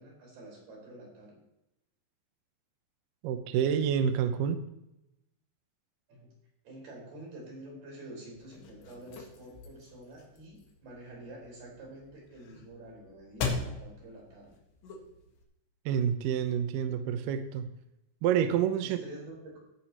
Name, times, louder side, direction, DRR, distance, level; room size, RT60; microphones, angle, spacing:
voice 1, 0.0-1.4 6.1-6.3 6.7-14.5 18.8-19.6, right 1 dB, 60° right, -3 dB, 6.9 m, -48 dB
voice 2, 3.2-4.6 15.9-17.7 18.2-19.0, right 8 dB, 85° right, 8 dB, 1.9 m, -28 dB
sound 1, 8.4-15.4, left 4 dB, 70° left, 3.8 m, -41 dB
17.5 x 9.7 x 3.1 m, 0.87 s
omnidirectional pair, 5.1 m